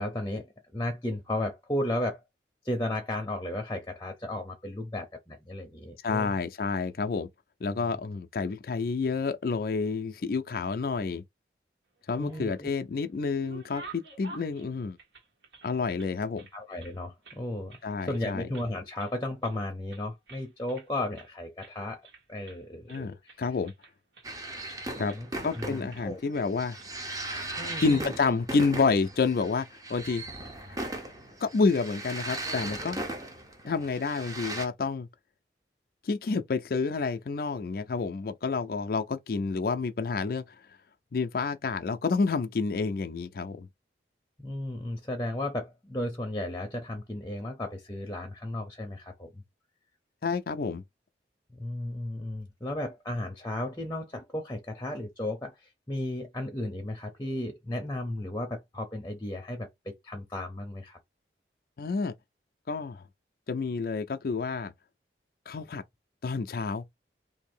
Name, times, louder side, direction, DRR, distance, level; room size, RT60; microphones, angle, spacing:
voice 1, 0.0-2.2 2.6-6.4 7.7-7.9 12.2-12.7 16.5-22.0 22.3-23.4 24.5-26.2 27.6-28.1 44.4-49.4 51.5-61.0, left 1 dB, 15° left, 0.7 m, -34 dB
voice 2, 6.0-7.3 7.6-11.2 12.1-15.0 15.6-16.5 17.8-18.5 22.9-23.7 25.0-25.1 25.4-26.8 27.8-30.2 30.7-31.0 31.4-33.0 33.6-35.1 36.0-40.4 41.1-43.7 50.2-50.8 61.8-62.1 62.7-63.0 63.5-64.7 65.5-65.8 66.2-66.8, left 4 dB, 55° left, 0.4 m, -29 dB
sound 1, 12.0-12.8 13.2-16.1 16.4-17.4 17.7-17.9 18.1-18.7 19.0-19.6 19.9-20.9 21.2-21.3 21.6-21.8 22.0-22.6 22.9-24.8 25.1-25.2 25.5-26.4 26.8-27.0 27.2-27.4 27.7-28.3 28.6-28.7 29.7-30.0, right 3 dB, 75° right, 1.6 m, -50 dB
sound 2, 24.2-34.6, right 1 dB, 20° right, 0.7 m, -38 dB
2.7 x 2.7 x 4.3 m
head